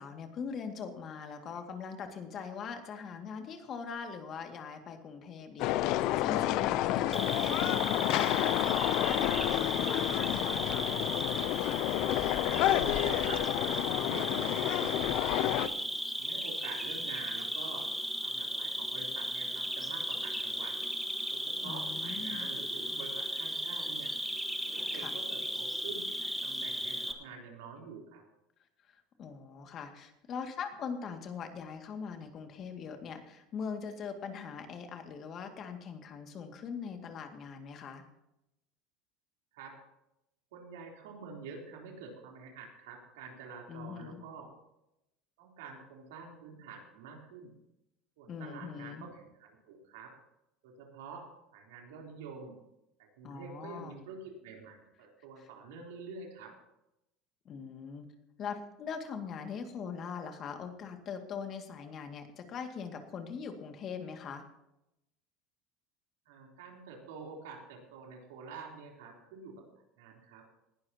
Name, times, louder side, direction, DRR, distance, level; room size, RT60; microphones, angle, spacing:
voice 1, 0.0-10.9 21.6-22.5 24.9-25.2 28.9-38.0 43.7-44.2 48.3-49.1 53.2-54.0 55.4-55.5 57.5-58.1 58.4-64.5, left 6 dB, 45° left, 5 dB, 2.1 m, -41 dB
sound 1, 5.6-15.7, left 15 dB, 65° left, 0.5 m, -30 dB
Cricket, 7.1-27.1, right 1 dB, 5° right, 1.5 m, -36 dB
voice 2, 12.4-13.5 13.9-15.7 16.2-17.9 18.2-20.8 21.3-24.1 24.7-28.2 39.5-39.8 40.5-44.5 45.4-47.5 48.2-50.2 50.6-52.6 53.0-56.6 66.3-69.7 70.0-70.5, right 5 dB, 90° right, 0 dB, 3.5 m, -47 dB
19.5 x 12.0 x 2.9 m, 0.87 s
supercardioid pair, 110°, 0 cm